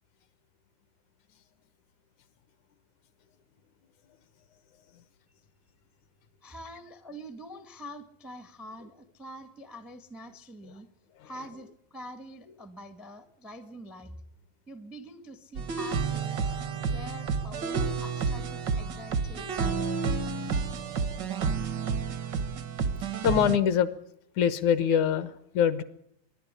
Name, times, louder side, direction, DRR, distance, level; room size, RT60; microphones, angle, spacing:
voice 1, 6.4-10.9 11.2-14.1 14.7-20.1, equal, ahead, 9 dB, 0.4 m, -45 dB
sound 1, 15.5-23.6, right 5 dB, 70° right, 1.0 m, -30 dB
voice 2, 23.2-23.9 24.4-25.8, left 8 dB, 70° left, 14 dB, 2.3 m, -24 dB
25.5 x 11.5 x 9.9 m, 0.73 s
omnidirectional pair, 3.9 m